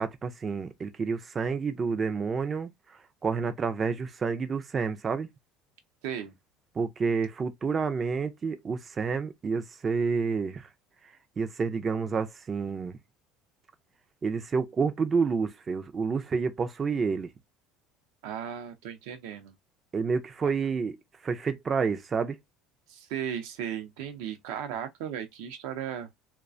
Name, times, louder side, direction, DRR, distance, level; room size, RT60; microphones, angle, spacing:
voice 1, 0.0-5.3 6.8-10.7 11.4-13.0 14.2-17.3 19.9-21.0 21.2-22.4, right 5 dB, 25° right, 0.3 m, -29 dB
voice 2, 6.0-6.3 18.2-19.5 20.4-20.5 22.9-26.2, right 9 dB, 85° right, 0.5 m, -36 dB
2.3 x 2.1 x 2.5 m
cardioid pair, 120°, 0 cm